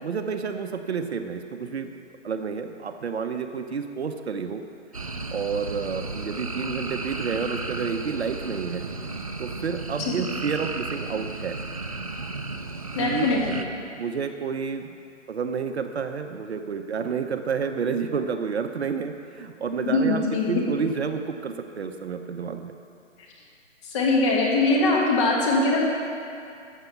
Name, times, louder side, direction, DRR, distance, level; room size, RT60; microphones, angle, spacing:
voice 1, 0.0-1.9 2.2-4.6 5.3-8.9 9.4-11.6 12.9-13.3 13.9-14.9 15.3-20.2 20.5-22.7, right 6 dB, 55° right, 7 dB, 0.9 m, -30 dB
sound 1, 4.9-13.6, right 3 dB, 30° right, 0.4 m, -34 dB
voice 2, 13.0-13.6 19.9-20.5 23.8-25.8, left 2 dB, 25° left, -3 dB, 1.8 m, -22 dB
14.0 x 7.1 x 7.0 m, 2.5 s
hypercardioid pair, 160°, 38 cm